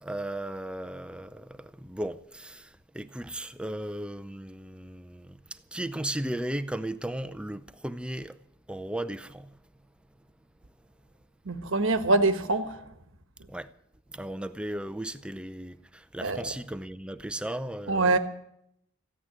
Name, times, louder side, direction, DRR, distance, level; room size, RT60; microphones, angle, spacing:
voice 1, 0.0-8.4 8.7-9.5 13.5-13.7 14.1-18.2, right 1 dB, 5° right, 0.5 m, -36 dB
voice 2, 11.4-12.8 16.2-16.6 17.9-18.2, right 2 dB, 60° right, 1.2 m, -24 dB
15.0 x 9.2 x 9.6 m
head